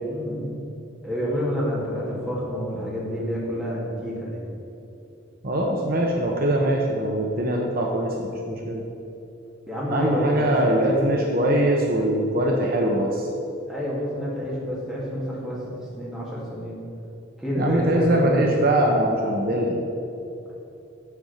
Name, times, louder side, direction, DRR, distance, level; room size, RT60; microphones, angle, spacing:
voice 1, 0.0-0.6 1.0-4.4 9.7-11.0 13.7-16.8 17.4-18.4, equal, ahead, -7 dB, 2.1 m, -28 dB
voice 2, 5.4-8.8 9.9-13.3 17.6-19.8, right 1 dB, 50° right, 0 dB, 0.9 m, -22 dB
7.0 x 6.8 x 6.5 m, 2.8 s
head